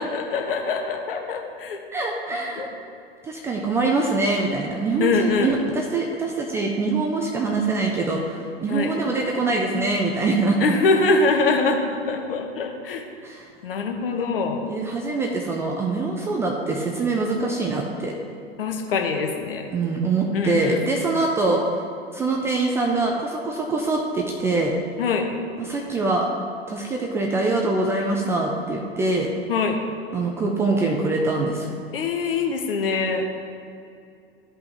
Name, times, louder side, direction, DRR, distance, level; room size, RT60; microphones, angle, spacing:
voice 1, 0.0-1.8 2.6-2.7 5.0-5.6 8.7-8.9 10.6-13.0 13.6-14.7 18.6-19.7 20.3-20.8 25.0-25.3 29.5-29.8 31.9-33.3, left 4 dB, 60° left, 3 dB, 1.1 m, -23 dB
voice 2, 1.9-2.7 3.2-10.7 13.2-13.5 14.7-18.1 19.7-21.6 22.1-24.7 25.6-26.3 26.7-29.3 30.1-31.7, right 3 dB, 10° right, 0 dB, 0.3 m, -24 dB
13.5 x 5.3 x 2.9 m, 2.5 s
figure-of-eight pair, 95°, 31 cm